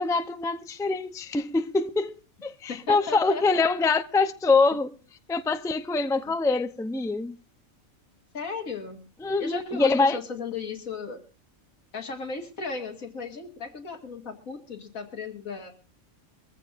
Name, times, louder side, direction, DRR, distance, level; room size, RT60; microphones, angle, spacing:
voice 1, 0.0-5.0 5.3-7.4 9.2-10.2, left 3 dB, 5° left, 0.4 m, -24 dB
voice 2, 2.7-3.4 4.7-4.8 6.3-6.4 8.3-9.0 9.4-11.2 11.9-15.7, left 4 dB, 80° left, 2.5 m, -35 dB
23.5 x 15.0 x 2.6 m
omnidirectional pair, 1.4 m